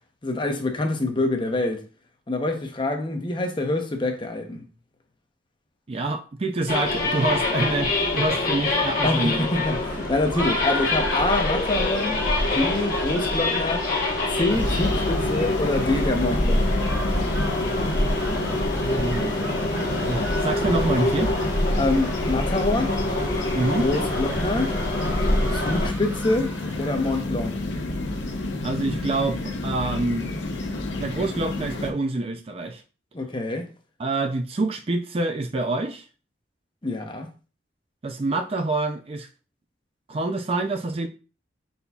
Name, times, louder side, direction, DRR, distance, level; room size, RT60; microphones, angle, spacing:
voice 1, 0.2-1.8 2.3-4.6 9.0-12.2 12.5-13.9 14.3-16.7 21.8-22.9 23.8-24.7 25.5-27.6 33.1-33.7 36.8-37.3, left 2 dB, 25° left, 0.7 m, -26 dB
voice 2, 5.9-9.5 18.8-21.3 23.5-23.9 28.6-30.4 31.0-32.8 34.0-36.0 38.0-39.3 40.1-41.1, right 2 dB, 30° right, 0.4 m, -27 dB
sound 1, 6.7-25.9, left 2 dB, 50° left, 1.1 m, -25 dB
sound 2, 9.7-27.2, equal, 15° right, 0.9 m, -39 dB
sound 3, 14.5-31.9, left 2 dB, 75° left, 0.8 m, -30 dB
5.3 x 4.1 x 2.3 m
head